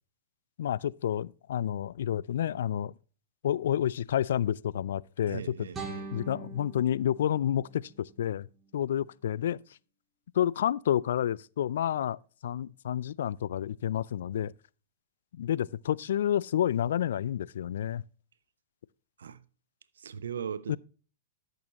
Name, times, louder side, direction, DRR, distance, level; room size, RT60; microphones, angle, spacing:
voice 1, 0.6-2.9 3.4-5.7 6.1-8.5 8.7-9.6 10.3-14.5 15.3-18.0 20.7-20.8, left 10 dB, 70° left, 0.3 m, -29 dB
voice 2, 5.3-6.1 19.2-19.4 20.0-20.8, right 7 dB, 80° right, 0.7 m, -38 dB
sound 1, 5.7-8.7, right 4 dB, 20° right, 2.3 m, -44 dB
12.5 x 6.6 x 2.9 m
hypercardioid pair, 120°, 0 cm